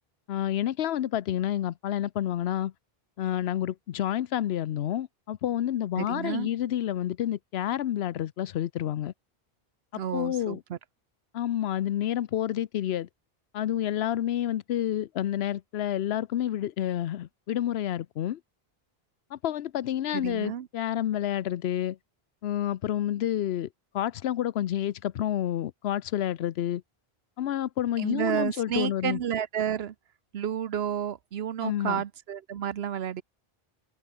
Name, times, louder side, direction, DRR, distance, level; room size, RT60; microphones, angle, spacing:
voice 1, 0.3-2.7 3.2-9.1 10.1-10.6 11.3-13.1 13.5-18.4 19.3-22.0 22.4-23.7 23.9-26.8 27.4-29.2 31.6-32.0, left 11 dB, 80° left, 0.9 m, -29 dB
voice 2, 6.0-6.5 9.9-10.8 20.1-20.7 28.0-29.9 30.3-33.2, right 9 dB, 80° right, 1.0 m, -31 dB
omnidirectional pair, 1.0 m